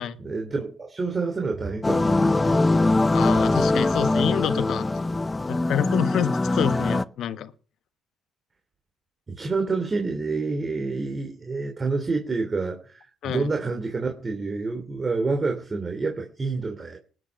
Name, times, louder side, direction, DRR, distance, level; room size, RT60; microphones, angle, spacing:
voice 1, 0.2-2.7 3.2-3.5 9.3-17.0, right 3 dB, 30° right, 3 dB, 2.9 m, -28 dB
sound 1, 1.8-7.0, left 2 dB, 20° left, 0.7 m, -22 dB
voice 2, 3.1-4.9 5.5-7.5 13.2-13.5, left 10 dB, 65° left, 13 dB, 1.2 m, -27 dB
19.5 x 8.8 x 6.0 m, 0.41 s
supercardioid pair, 65°, 0 cm